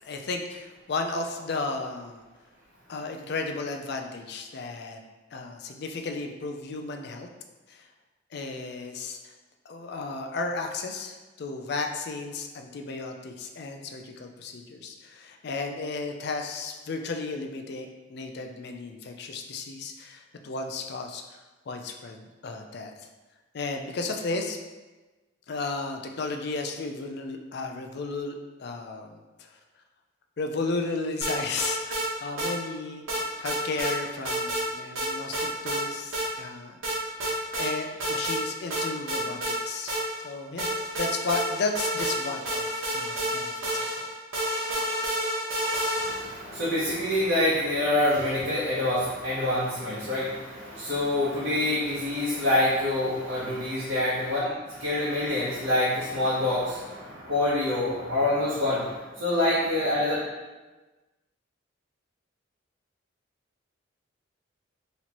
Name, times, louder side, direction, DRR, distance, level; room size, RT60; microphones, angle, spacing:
voice 1, 0.0-2.2 2.9-5.0 5.3-7.3 7.7-7.8 8.3-9.3 9.7-21.4 21.7-22.9 23.5-24.6 25.5-29.1 30.4-33.0 33.4-36.8 37.3-39.9 40.2-40.7 41.0-44.0, left 3 dB, 50° left, 4 dB, 0.4 m, -34 dB
sound 1, 31.2-32.1 32.4-32.5 33.1-33.9 34.2-34.7 35.0-35.8 36.1-36.3 36.8-37.7 38.0-38.4 38.7-40.3 40.6-46.3, right 1 dB, 80° right, 1.1 m, -29 dB
voice 2, 46.0-54.5 54.8-58.9 59.2-60.2, left 1 dB, 60° right, -9 dB, 0.9 m, -26 dB
4.1 x 3.0 x 2.9 m, 1.2 s
head